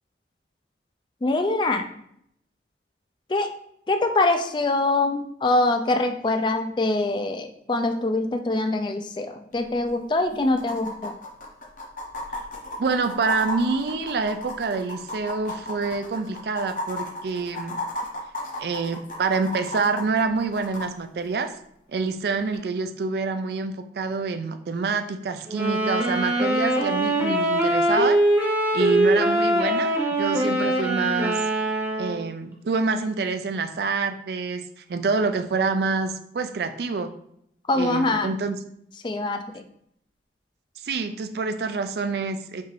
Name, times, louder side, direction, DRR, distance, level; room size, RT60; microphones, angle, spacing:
voice 1, 1.2-1.8 3.3-3.5 3.9-11.1 37.7-38.3 39.0-39.6, left 2 dB, 25° left, 6 dB, 0.3 m, -24 dB
sound 1, 9.5-9.6 9.8-9.9 10.6-20.9 22.5-22.6, left 1 dB, 45° left, 0.7 m, -34 dB
voice 2, 12.8-17.8 18.6-21.5 21.9-28.2 28.7-31.4 32.0-37.1 37.7-38.6 40.8-42.6, right 4 dB, 65° right, 8 dB, 0.4 m, -27 dB
sound 2, 25.5-32.3, right 1 dB, 10° right, 0.8 m, -22 dB
5.4 x 2.5 x 3.2 m, 0.72 s
head